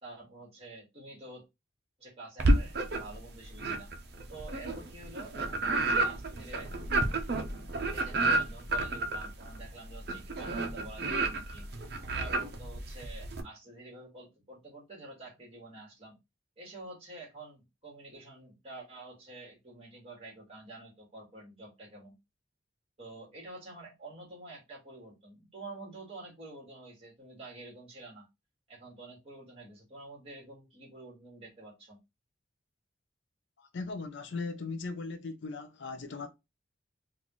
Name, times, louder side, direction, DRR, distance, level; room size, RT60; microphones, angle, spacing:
voice 1, 0.0-1.4 2.0-3.9 4.3-6.7 7.8-11.7 12.2-16.2 16.6-22.2 23.0-28.3 28.7-32.0, right 2 dB, 30° right, 1.9 m, -48 dB
sound 1, 2.4-3.2 3.6-13.4, right 2 dB, 50° right, 0.6 m, -30 dB
voice 2, 33.6-36.3, left 3 dB, 60° left, 0.5 m, -38 dB
3.9 x 2.4 x 3.0 m
head